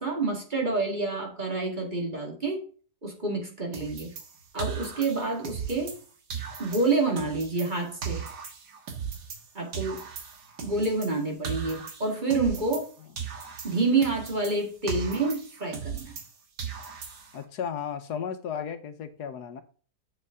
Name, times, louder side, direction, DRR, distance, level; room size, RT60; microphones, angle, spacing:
voice 1, 0.0-2.6 3.0-4.1 4.5-5.9 6.6-8.2 9.5-10.0 10.6-12.9 13.6-16.2, right 3 dB, 30° right, 1 dB, 2.0 m, -28 dB
sound 1, 3.7-6.0 6.3-9.5 9.7-12.9 13.2-16.3 16.6-17.4, right 7 dB, 80° right, 2.0 m, -38 dB
voice 2, 17.3-19.6, left 7 dB, 75° left, 9 dB, 1.4 m, -34 dB
7.5 x 6.8 x 3.6 m, 0.40 s
omnidirectional pair, 1.8 m